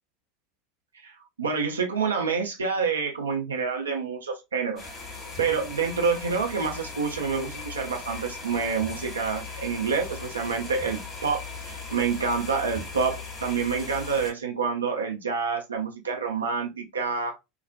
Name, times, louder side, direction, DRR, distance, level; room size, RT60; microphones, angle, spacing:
voice 1, 1.0-4.9 5.4-17.4, right 5 dB, 80° right, 0.4 m, -28 dB
sound 1, 4.8-14.3, left 4 dB, 30° left, 1.3 m, -38 dB
2.5 x 2.0 x 2.5 m
figure-of-eight pair, 75°, 0 cm